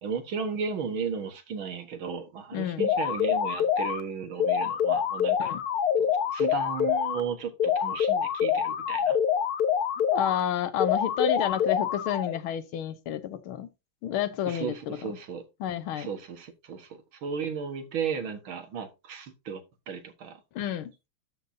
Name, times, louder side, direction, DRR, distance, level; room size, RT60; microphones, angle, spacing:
voice 1, 0.0-5.5 6.3-9.2 14.5-15.4 16.0-16.9 17.2-19.6 19.9-20.4, right 6 dB, 70° right, 2.3 m, -34 dB
voice 2, 2.5-2.9 5.4-5.6 10.1-13.7 14.0-15.1 15.6-16.1 20.6-20.9, left 10 dB, 75° left, 1.7 m, -30 dB
sound 1, 2.8-4.0 4.4-7.2 7.6-10.4 10.8-12.4, left 8 dB, 60° left, 1.1 m, -26 dB
12.5 x 7.1 x 2.7 m
omnidirectional pair, 2.4 m